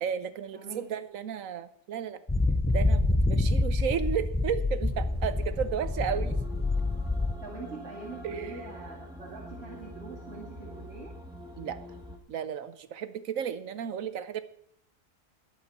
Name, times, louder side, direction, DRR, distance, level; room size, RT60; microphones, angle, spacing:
voice 1, 0.0-2.2 2.7-6.4 8.2-8.7 11.6-11.8 12.3-14.4, right 8 dB, 80° right, 12 dB, 1.2 m, -33 dB
sound 1, 2.3-7.3, left 2 dB, 15° left, 0.4 m, -27 dB
sound 2, 4.9-12.2, left 1 dB, 5° right, 1.7 m, -45 dB
voice 2, 7.4-11.1, right 3 dB, 50° right, -5 dB, 2.8 m, -43 dB
20.5 x 8.0 x 4.2 m, 0.64 s
omnidirectional pair, 1.4 m